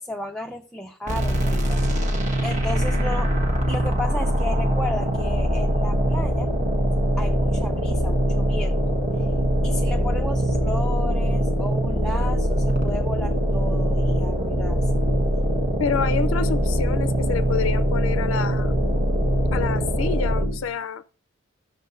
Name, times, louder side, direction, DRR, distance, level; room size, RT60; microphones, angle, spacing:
voice 1, 0.0-2.1 2.4-3.4 3.7-6.5 7.2-8.8 9.2-9.3 9.6-15.0, left 1 dB, 5° left, 0.4 m, -34 dB
sound 1, 1.1-20.7, equal, 40° right, 1.2 m, -22 dB
voice 2, 15.8-18.7 19.5-21.0, left 6 dB, 75° left, 0.4 m, -28 dB
15.5 x 6.4 x 2.6 m
head